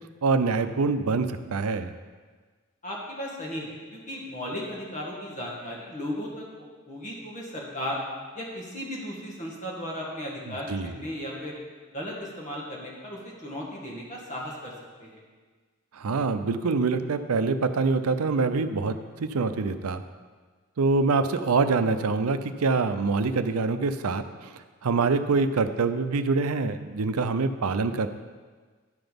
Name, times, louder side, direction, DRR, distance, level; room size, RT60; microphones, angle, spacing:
voice 1, 0.2-1.9 10.5-11.0 15.9-20.0 20.8-28.1, right 4 dB, 85° right, 10 dB, 0.6 m, -25 dB
voice 2, 2.8-6.4 6.9-8.0 8.3-11.5 11.9-14.7 15.0-15.2, equal, 35° left, -3 dB, 1.9 m, -35 dB
10.5 x 5.9 x 5.2 m, 1.4 s
head